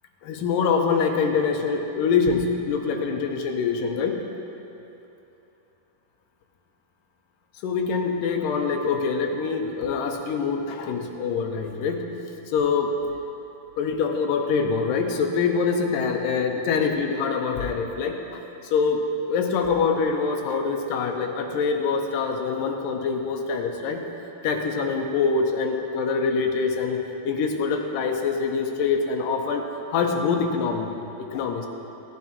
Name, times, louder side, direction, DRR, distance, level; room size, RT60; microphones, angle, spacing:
voice 1, 0.2-4.2 7.6-12.2 12.5-12.9 13.8-18.4 18.7-19.0 19.3-24.1 24.4-31.7, left 5 dB, 90° left, 3 dB, 2.4 m, -25 dB
17.5 x 11.0 x 2.9 m, 2.9 s
omnidirectional pair, 3.9 m